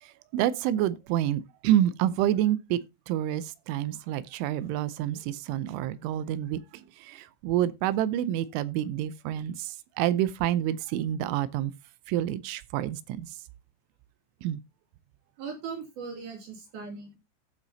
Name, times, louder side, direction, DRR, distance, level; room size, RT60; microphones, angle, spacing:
voice 1, 0.0-2.8 3.1-6.6 7.0-11.7 12.1-13.4 14.4-14.6, right 12 dB, 85° right, 3.1 m, -28 dB
voice 2, 15.4-17.2, right 5 dB, 55° right, 4.1 m, -39 dB
15.5 x 6.0 x 2.7 m
omnidirectional pair, 5.6 m